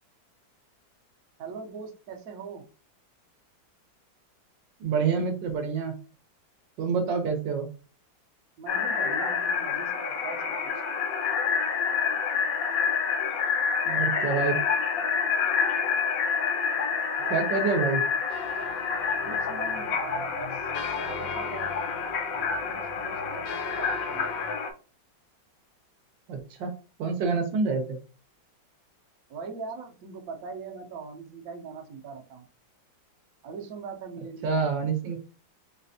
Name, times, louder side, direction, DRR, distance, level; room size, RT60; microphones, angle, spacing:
voice 1, 1.4-2.7 8.6-10.7 17.2-17.7 19.2-21.9 22.3-24.3 29.3-32.4 33.4-34.6, right 5 dB, 60° right, 2 dB, 1.1 m, -41 dB
voice 2, 4.8-5.9 6.8-7.7 13.9-14.6 17.3-18.0 26.3-26.7 27.0-27.8 34.4-35.2, right 5 dB, 75° right, 4 dB, 1.4 m, -27 dB
sound 1, 8.7-24.7, left 6 dB, 65° left, 0.9 m, -28 dB
sound 2, 18.3-24.6, left 6 dB, 80° left, 1.4 m, -42 dB
4.0 x 3.3 x 2.7 m, 0.36 s
omnidirectional pair, 2.1 m